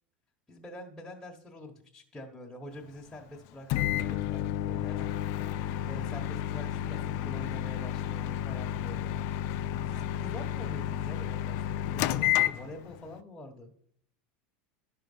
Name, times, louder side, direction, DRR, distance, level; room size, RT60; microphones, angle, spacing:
voice 1, 0.5-5.2 5.8-9.3 9.9-13.7, left 1 dB, 10° left, -2 dB, 1.4 m, -46 dB
Microwave oven, 3.7-13.1, left 12 dB, 60° left, 0.5 m, -31 dB
11.0 x 5.3 x 5.6 m, 0.67 s
supercardioid pair, 110°, 6 cm